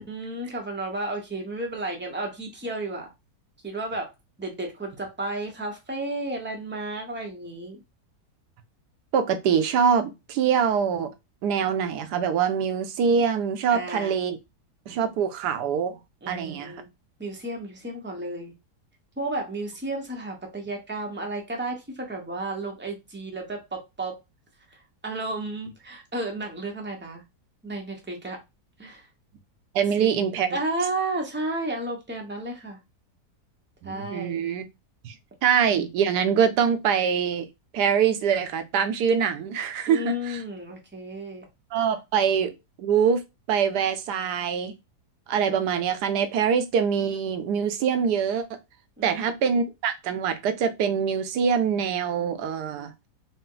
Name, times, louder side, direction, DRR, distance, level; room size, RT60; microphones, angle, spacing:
voice 1, 0.0-3.1 3.6-4.1 4.4-7.8 13.7-14.2 16.2-16.9 17.2-18.5 19.2-24.2 25.0-27.2 27.6-28.4 28.8-29.1 30.0-32.8 33.8-34.4 39.9-41.5 49.0-49.6, right 2 dB, 15° right, 0.5 m, -33 dB
voice 2, 9.1-11.1 11.4-14.4 14.9-16.0 16.3-16.7 29.7-30.6 33.8-34.7 35.0-35.2 35.4-37.5 37.7-40.4 41.7-43.2 43.5-44.7 45.3-48.6 49.0-52.9, right 7 dB, 80° right, 1.2 m, -24 dB
4.1 x 2.1 x 3.8 m
omnidirectional pair, 1.8 m